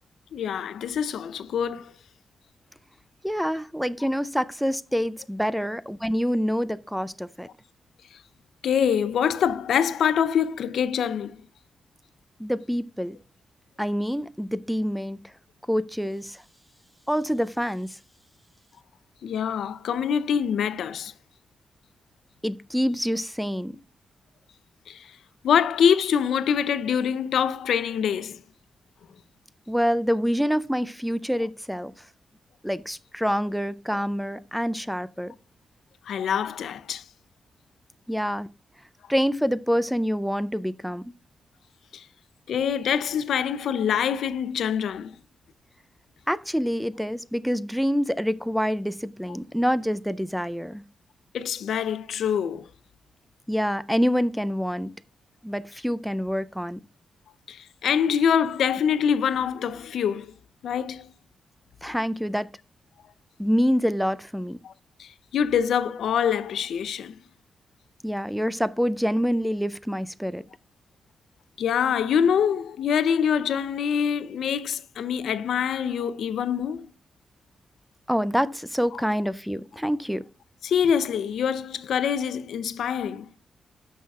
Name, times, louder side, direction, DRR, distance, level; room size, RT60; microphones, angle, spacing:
voice 1, 0.3-1.9 8.6-11.4 19.2-21.1 24.9-25.1 25.4-28.4 36.1-37.0 41.9-42.1 42.5-45.2 51.3-52.7 57.5-60.3 60.6-61.1 64.6-64.7 65.0-67.2 71.6-76.9 78.9-79.0 80.6-83.3, left 8 dB, 80° left, 0.5 m, -25 dB
voice 2, 3.2-7.5 12.4-13.2 13.8-15.2 15.7-16.4 17.1-17.9 22.4-23.7 29.7-31.9 32.6-35.3 38.1-38.5 39.1-41.0 46.3-50.8 53.5-54.9 55.4-56.8 61.8-62.5 63.4-64.6 68.0-70.4 78.1-80.2, equal, ahead, 0.3 m, -26 dB
12.5 x 5.6 x 2.3 m
wide cardioid pair, 140°, 0 cm